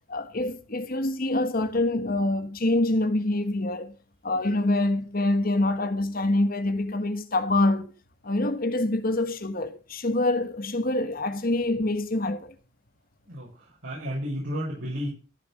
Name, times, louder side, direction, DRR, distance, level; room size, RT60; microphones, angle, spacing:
voice 1, 0.1-3.9 4.2-7.9 8.2-12.5, left 2 dB, 45° left, 1.4 m, -25 dB
voice 2, 13.2-15.1, equal, 70° right, 6.8 m, -32 dB
15.0 x 6.9 x 6.6 m
head